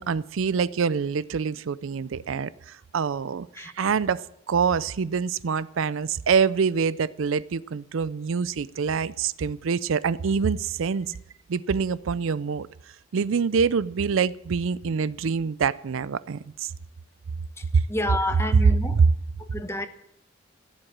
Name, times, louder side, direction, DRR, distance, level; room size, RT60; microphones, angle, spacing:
voice 1, 0.0-4.2 4.5-11.1 11.5-12.7 13.1-16.7 17.7-17.8 18.9-19.0, right 6 dB, 75° right, 0.4 m, -25 dB
voice 2, 17.6-19.0 19.4-19.9, left 1 dB, 15° left, 0.9 m, -29 dB
15.5 x 7.9 x 8.5 m
head